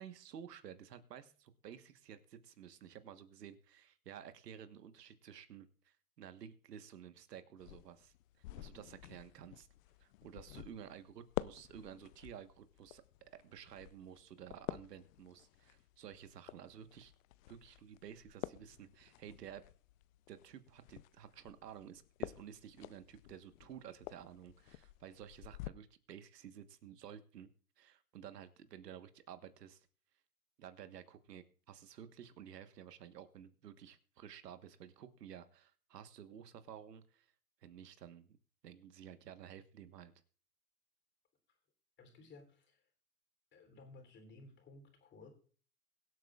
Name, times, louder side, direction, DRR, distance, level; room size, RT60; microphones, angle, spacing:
voice 1, 0.0-8.1 8.6-9.7 10.0-13.0 13.3-17.1 17.5-19.6 20.3-27.5 27.8-29.9 30.6-37.3 37.6-38.3 38.6-40.1, right 9 dB, 80° right, 10 dB, 1.4 m, -53 dB
sound 1, 7.6-25.7, left 16 dB, 55° left, 0.6 m, -49 dB
voice 2, 42.0-42.9 43.5-45.3, left 3 dB, 25° left, 4 dB, 3.3 m, -57 dB
23.0 x 8.0 x 2.4 m, 0.40 s
hypercardioid pair, 120°, 47 cm